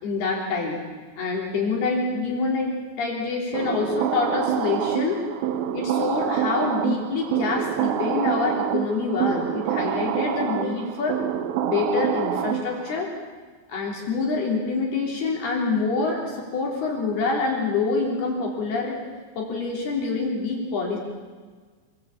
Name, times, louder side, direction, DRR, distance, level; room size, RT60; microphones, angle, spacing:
voice 1, 0.0-0.8 1.2-5.3 5.7-11.2 11.6-13.1 13.7-19.0 19.4-21.0, left 4 dB, 60° left, -2 dB, 5.3 m, -26 dB
sound 1, 3.5-13.0, right 9 dB, 80° right, 3.4 m, -26 dB
26.0 x 21.0 x 8.5 m, 1.5 s
omnidirectional pair, 5.1 m